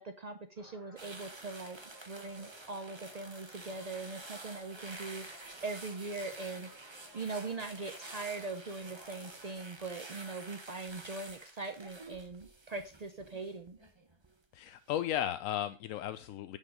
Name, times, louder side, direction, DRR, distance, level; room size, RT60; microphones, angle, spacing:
voice 1, 0.0-1.8 2.0-13.8, right 3 dB, 65° right, 8 dB, 0.4 m, -41 dB
sound 1, 0.6-9.6, equal, ahead, 4.8 m, -58 dB
sound 2, 1.0-14.3 14.7-15.0, right 2 dB, 20° right, 1.0 m, -50 dB
voice 2, 14.5-16.6, left 11 dB, 70° left, 12 dB, 0.8 m, -35 dB
9.7 x 5.5 x 5.0 m, 0.35 s
omnidirectional pair, 1.7 m